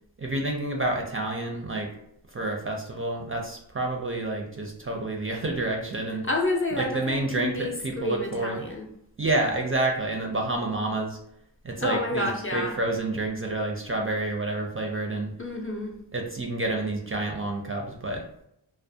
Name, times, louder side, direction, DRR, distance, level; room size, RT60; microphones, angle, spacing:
voice 1, 0.2-1.9 2.3-6.2 6.8-8.6 9.2-11.2 11.6-15.3 16.1-18.2, right 2 dB, 30° right, 1 dB, 0.4 m, -29 dB
voice 2, 6.2-8.9 11.8-12.7 15.4-16.0, left 2 dB, 30° left, 0 dB, 0.5 m, -29 dB
2.3 x 2.0 x 2.6 m, 0.74 s
cardioid pair, 40°, 45 cm